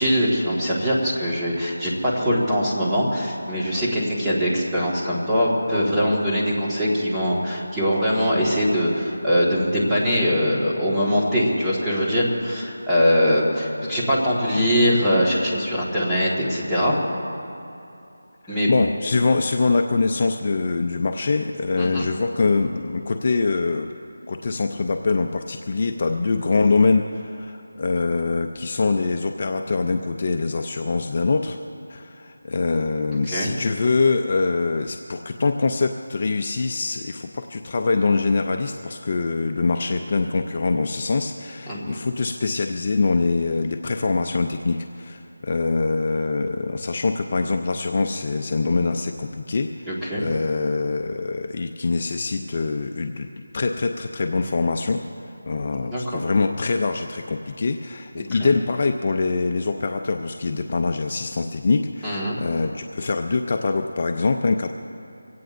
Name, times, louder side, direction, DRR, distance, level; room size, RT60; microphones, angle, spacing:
voice 1, 0.0-16.9 18.5-18.7 21.8-22.1 33.3-33.5 41.7-42.0 49.9-50.2 55.9-56.2 58.2-58.5 62.0-62.4, equal, 5° right, -9 dB, 1.7 m, -22 dB
voice 2, 18.4-23.9 24.3-31.6 31.9-53.3 53.5-64.7, left 3 dB, 35° left, 5 dB, 0.5 m, -24 dB
24.0 x 17.0 x 2.6 m, 2.7 s
figure-of-eight pair, 175°, 0 cm